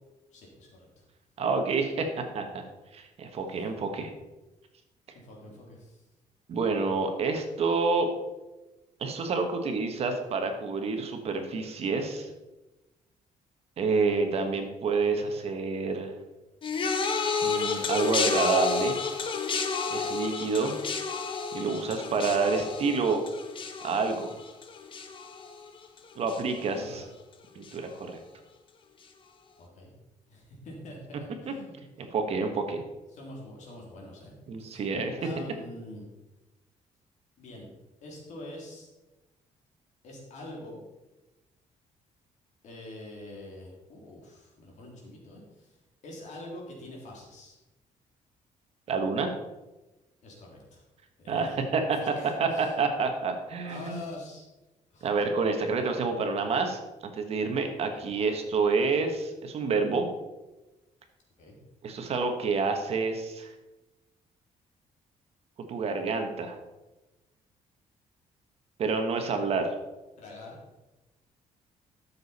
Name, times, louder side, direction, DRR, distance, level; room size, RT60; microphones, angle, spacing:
voice 1, 0.3-1.0 5.1-6.0 14.9-15.3 26.7-27.0 29.6-29.9 30.3-31.8 33.1-34.3 34.6-34.8 35.2-36.1 37.4-37.7 38.0-38.9 40.0-40.8 42.6-47.6 50.2-50.8 51.2-52.7 53.6-54.4 54.9-55.1 57.7-58.0 61.4-61.6 70.2-70.6, left 1 dB, 60° left, -2 dB, 3.2 m, -45 dB
voice 2, 1.4-2.6 2.9-4.1 6.5-8.1 9.0-12.3 13.8-16.1 17.4-18.9 19.9-20.7 21.5-23.2 23.8-24.3 26.2-27.0 27.5-28.2 31.5-31.6 32.0-32.8 34.5-35.2 48.9-49.3 51.3-52.0 52.4-54.0 55.0-60.1 61.8-63.5 65.7-66.5 68.8-69.7, right 4 dB, 50° right, 5 dB, 1.4 m, -28 dB
sound 1, 16.6-26.0 26.3-26.8 27.7-27.8, left 5 dB, 40° left, 1.0 m, -31 dB
12.5 x 7.1 x 4.3 m, 1.1 s
cardioid pair, 160°, 14 cm